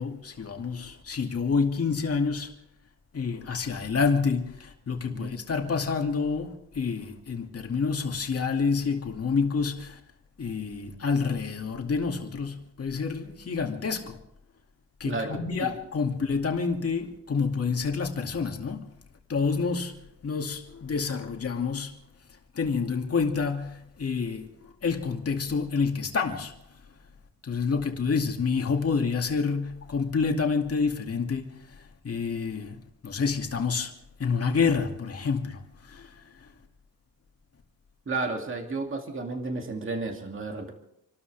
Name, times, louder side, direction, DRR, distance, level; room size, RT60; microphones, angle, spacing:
voice 1, 0.0-2.5 3.1-10.0 10.4-14.2 15.0-18.9 19.3-20.0 20.2-22.0 22.6-26.5 27.4-31.6 32.0-32.8 33.0-33.9 34.2-36.1, left 5 dB, 40° left, 2.4 m, -28 dB
voice 2, 15.1-15.7 38.1-40.7, right 3 dB, 35° right, 2.5 m, -32 dB
28.0 x 12.5 x 3.4 m
cardioid pair, 120°, 37 cm